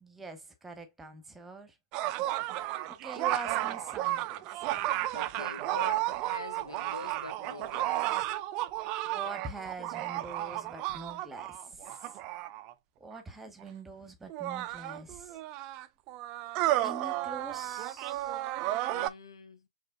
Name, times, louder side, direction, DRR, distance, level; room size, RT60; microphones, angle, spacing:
voice 1, 0.0-1.7 3.0-4.9 9.1-11.6 13.0-15.4 16.4-16.5 16.8-18.3, right 3 dB, 5° right, 1.1 m, -44 dB
sound 1, 1.9-12.7 13.6-13.7 14.3-19.1, right 15 dB, 30° right, 0.4 m, -33 dB
voice 2, 4.8-8.3 18.9-19.7, left 3 dB, 90° left, 1.2 m, -45 dB
6.6 x 3.3 x 2.2 m
hypercardioid pair, 135°, 3 cm